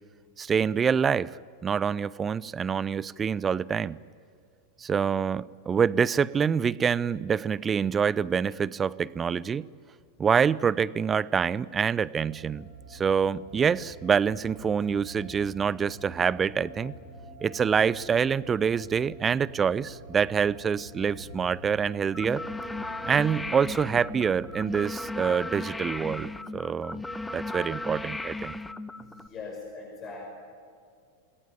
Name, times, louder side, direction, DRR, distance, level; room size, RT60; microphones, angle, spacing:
voice 1, 0.4-1.3 1.6-4.0 4.8-9.7 10.2-16.9 17.4-22.4 23.0-27.0 27.3-28.5, right 6 dB, 20° right, 22 dB, 0.6 m, -26 dB
sound 1, 12.2-24.8, equal, 75° left, 7.6 m, -47 dB
sound 2, 22.1-29.3, left 2 dB, 5° left, 0.8 m, -36 dB
voice 2, 29.0-30.3, left 4 dB, 30° left, 1 dB, 5.6 m, -41 dB
27.5 x 20.5 x 9.2 m, 2.3 s
figure-of-eight pair, 90°, 0 cm